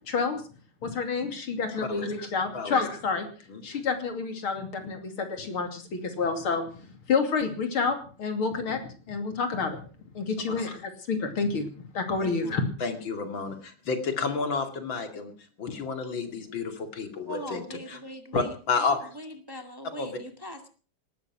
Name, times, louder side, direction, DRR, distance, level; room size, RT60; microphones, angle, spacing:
voice 1, 0.1-0.4 0.8-3.3 3.6-6.7 7.1-9.8 10.2-11.7 11.9-12.7, left 4 dB, 80° left, 7 dB, 3.5 m, -29 dB
voice 2, 1.7-2.1 2.5-2.8 3.5-3.6 12.2-15.3 15.6-17.6 17.9-18.0 18.3-19.0 20.0-20.2, left 4 dB, 65° left, 7 dB, 3.2 m, -31 dB
voice 3, 17.3-20.7, equal, 10° right, 7 dB, 1.8 m, -41 dB
18.5 x 13.0 x 5.9 m, 0.39 s
omnidirectional pair, 2.3 m